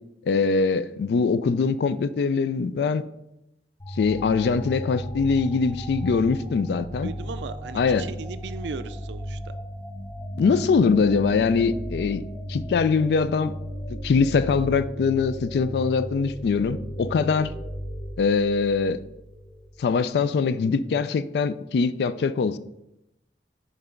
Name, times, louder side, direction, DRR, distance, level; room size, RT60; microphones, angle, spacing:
voice 1, 0.3-3.0 4.0-7.1 7.7-8.1 10.4-12.2 12.5-13.5 13.9-17.5 18.2-19.0 19.8-22.6, left 5 dB, 65° left, 0.3 m, -22 dB
sound 1, 3.8-20.1, equal, 15° left, 0.6 m, -35 dB
voice 2, 7.0-9.5, right 4 dB, 80° right, 0.4 m, -37 dB
5.8 x 3.3 x 5.1 m
head